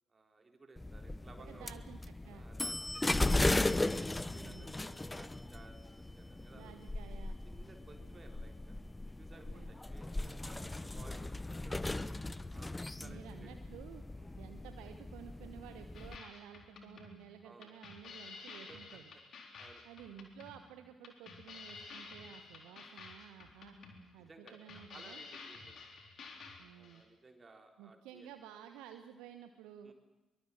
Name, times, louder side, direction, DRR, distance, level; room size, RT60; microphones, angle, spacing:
voice 1, 0.1-1.7 2.3-3.6 4.2-5.8 6.1-6.7 7.5-8.8 9.2-11.9 12.5-13.5 14.1-14.4 17.4-17.7 18.7-18.8 19.1-19.2 19.6-19.8 22.6-22.9 24.2-25.8 26.7-28.3 29.8-29.9, right 3 dB, 30° right, 4 dB, 4.2 m, -58 dB
sound 1, 0.8-16.2, left 2 dB, 15° left, 1.0 m, -37 dB
voice 2, 1.5-2.5 4.4-4.7 6.5-7.4 9.5-9.8 13.0-14.0 14.4-19.1 19.8-23.8 24.1-25.2 26.6-27.0 27.8-29.9, right 9 dB, 70° right, 8 dB, 1.1 m, -53 dB
sound 2, 15.9-27.0, left 4 dB, 55° left, 3.9 m, -51 dB
23.5 x 23.0 x 7.6 m, 1.1 s
figure-of-eight pair, 40°, 0 cm